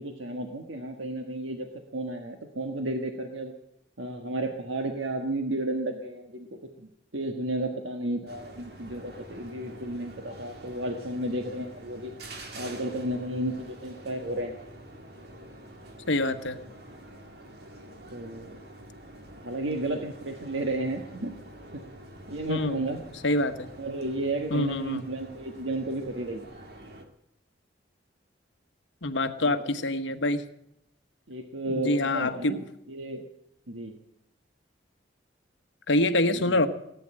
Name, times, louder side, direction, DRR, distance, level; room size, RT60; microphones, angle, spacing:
voice 1, 0.0-3.5 4.0-6.5 6.8-12.1 12.5-14.6 18.1-18.6 19.4-21.3 21.7-21.8 22.3-23.1 23.8-26.5 29.4-29.7 31.3-33.2 33.7-33.9 36.3-36.6, right 1 dB, 90° right, 4 dB, 1.5 m, -33 dB
sound 1, 8.3-27.0, right 1 dB, 55° right, 2.1 m, -46 dB
voice 2, 16.1-16.6 22.5-22.8 23.2-23.7 24.5-25.0 29.0-30.4 31.7-32.6 35.9-36.7, left 1 dB, 80° left, 8 dB, 1.2 m, -26 dB
18.0 x 9.5 x 7.7 m, 0.79 s
head